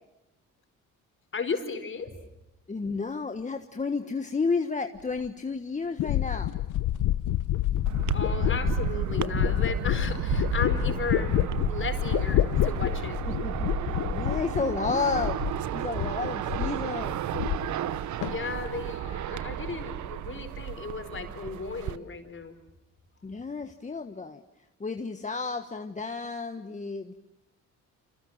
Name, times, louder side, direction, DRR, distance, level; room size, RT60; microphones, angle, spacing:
voice 1, 1.3-2.1 8.1-13.2 18.2-22.6, left 5 dB, 40° left, 7 dB, 4.7 m, -35 dB
voice 2, 2.7-6.5 13.2-17.2 23.2-24.4 24.8-27.1, left 4 dB, 25° left, 6 dB, 1.4 m, -32 dB
sound 1, 5.2-5.3 6.0-15.7 15.9-16.8 17.1-18.0 18.2-18.7, left 13 dB, 85° left, 0.9 m, -28 dB
sound 2, 7.9-22.0, right 11 dB, 70° right, 1.0 m, -33 dB
29.0 x 27.5 x 7.3 m, 0.98 s
cardioid pair, 90°, 30 cm